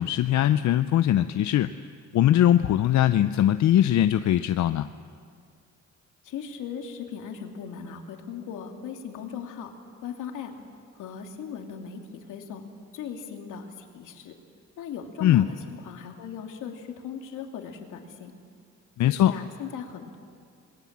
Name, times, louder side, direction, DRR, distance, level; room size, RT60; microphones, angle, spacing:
voice 1, 0.0-1.7 2.1-4.9 15.2-15.4 19.0-19.3, left 12 dB, 70° left, 11 dB, 0.7 m, -21 dB
voice 2, 6.2-9.7 10.0-10.5 10.9-12.0 12.3-12.6 12.9-14.3 14.8-18.3 19.0-20.2, left 7 dB, 85° left, 3 dB, 2.7 m, -38 dB
27.0 x 21.5 x 7.4 m, 2.2 s
cardioid pair, 90°, 30 cm